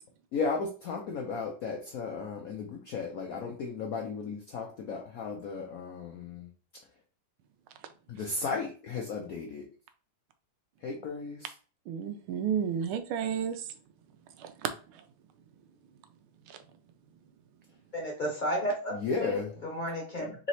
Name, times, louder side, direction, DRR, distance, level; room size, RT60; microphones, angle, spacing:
voice 1, 0.3-6.5 8.1-9.6 10.8-11.5 18.9-19.5, left 4 dB, 70° left, 0.8 m, -35 dB
voice 2, 11.9-13.6 14.4-14.7 16.5-16.6, right 8 dB, 85° right, 1.5 m, -31 dB
voice 3, 17.9-20.3, equal, 30° left, 1.1 m, -33 dB
3.9 x 3.1 x 4.1 m
omnidirectional pair, 2.2 m